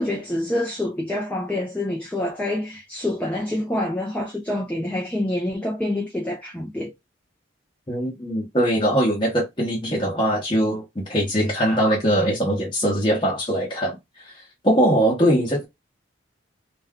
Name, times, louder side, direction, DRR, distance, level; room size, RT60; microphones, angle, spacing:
voice 1, 0.0-6.9, left 1 dB, 5° left, 0.4 m, -26 dB
voice 2, 7.9-14.0 14.6-15.6, equal, 25° left, 0.8 m, -21 dB
2.5 x 2.2 x 3.5 m
head